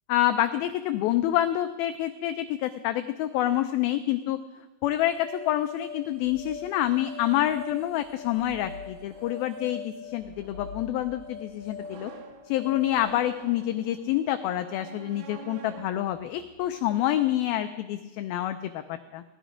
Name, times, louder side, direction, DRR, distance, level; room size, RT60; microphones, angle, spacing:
voice 1, 0.1-4.4 4.8-12.1 12.5-19.2, left 13 dB, 90° left, 9 dB, 2.1 m, -27 dB
sound 1, 5.0-13.2, left 4 dB, 35° right, 1.0 m, -42 dB
sound 2, 7.4-17.3, right 5 dB, 90° right, 3.5 m, -50 dB
17.5 x 12.5 x 5.1 m, 1.2 s
omnidirectional pair, 4.9 m